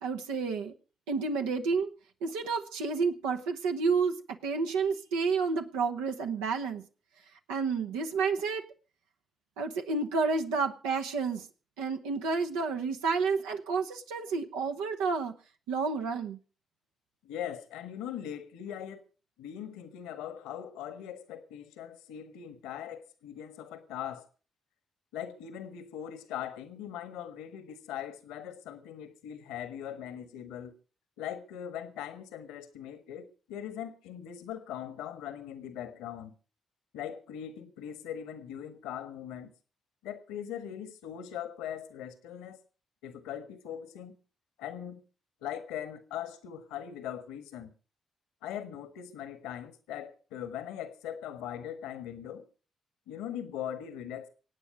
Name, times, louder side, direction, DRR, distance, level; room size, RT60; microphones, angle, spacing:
voice 1, 0.0-0.7 1.1-1.9 2.2-6.8 7.5-8.6 9.6-11.5 11.8-15.3 15.7-16.4, right 4 dB, 80° right, 1.0 m, -30 dB
voice 2, 17.2-19.0 19.4-24.3 25.1-30.7 31.2-36.3 36.9-39.5 40.0-42.6 43.0-44.2 44.6-45.0 45.4-47.7 48.4-52.5 53.1-54.3, left 10 dB, 75° left, 1.4 m, -40 dB
24.0 x 9.0 x 5.0 m
hypercardioid pair, 40°, 0 cm